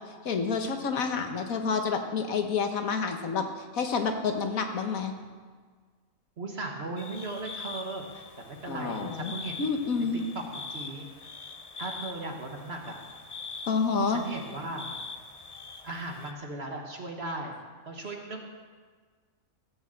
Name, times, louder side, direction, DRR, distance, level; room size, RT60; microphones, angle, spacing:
voice 1, 0.2-3.5 3.7-5.1 8.7-9.3 9.6-10.2 13.7-14.2, left 5 dB, 75° left, 5 dB, 1.6 m, -28 dB
voice 2, 6.4-9.7 10.0-11.1 11.4-11.5 11.8-13.0 14.1-14.9 15.8-17.6 17.9-18.5, right 2 dB, 45° right, 1 dB, 1.5 m, -37 dB
sound 1, 7.0-16.3, left 4 dB, 35° left, 0.6 m, -43 dB
15.5 x 6.4 x 7.6 m, 1.5 s
omnidirectional pair, 1.5 m